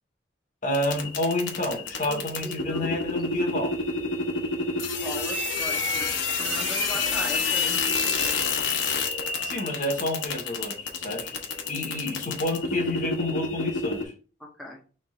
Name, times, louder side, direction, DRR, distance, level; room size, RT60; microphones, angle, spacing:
voice 1, 0.6-3.7 9.1-11.4 11.7-14.1, left 1 dB, 45° left, 1.0 m, -29 dB
sound 1, 0.7-14.0, left 4 dB, 80° left, 1.0 m, -28 dB
voice 2, 2.1-3.0 5.0-8.5 14.4-14.8, left 1 dB, ahead, 0.8 m, -39 dB
3.3 x 3.2 x 4.8 m
head